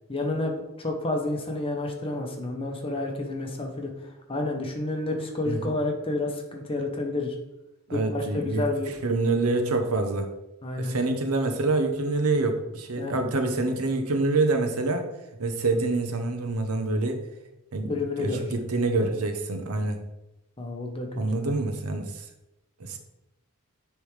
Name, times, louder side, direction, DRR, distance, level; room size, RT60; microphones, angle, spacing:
voice 1, 0.1-7.3 7.9-8.9 10.6-10.9 13.0-13.2 17.8-18.5 20.6-21.5, left 2 dB, 25° left, 2 dB, 0.8 m, -30 dB
voice 2, 7.9-8.6 9.0-10.3 10.8-15.1 15.4-17.2 17.7-20.0 21.2-22.2 22.8-23.0, right 3 dB, 80° right, 6 dB, 0.8 m, -26 dB
9.8 x 3.4 x 3.2 m, 0.95 s
head